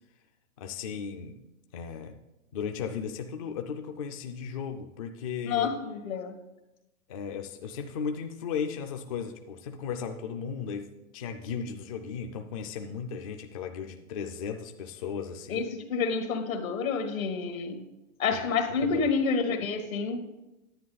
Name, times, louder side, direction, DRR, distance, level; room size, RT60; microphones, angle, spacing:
voice 1, 0.6-1.4 1.7-2.2 2.5-5.7 7.1-15.6 18.8-19.1, left 6 dB, 30° left, 5 dB, 0.4 m, -36 dB
voice 2, 5.4-6.4 15.5-17.8 18.2-20.4, left 5 dB, 80° left, 5 dB, 1.8 m, -29 dB
10.0 x 9.3 x 3.9 m, 0.96 s
hypercardioid pair, 155°, 41 cm